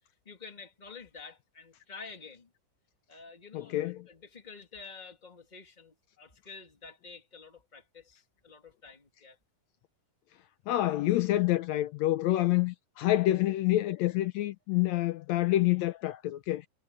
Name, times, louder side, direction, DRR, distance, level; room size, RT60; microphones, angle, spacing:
voice 1, 0.3-2.5 3.1-9.4, left 5 dB, 15° left, 1.9 m, -49 dB
voice 2, 3.5-4.0 10.7-16.7, left 15 dB, 85° left, 1.5 m, -27 dB
omnidirectional pair, 3.9 m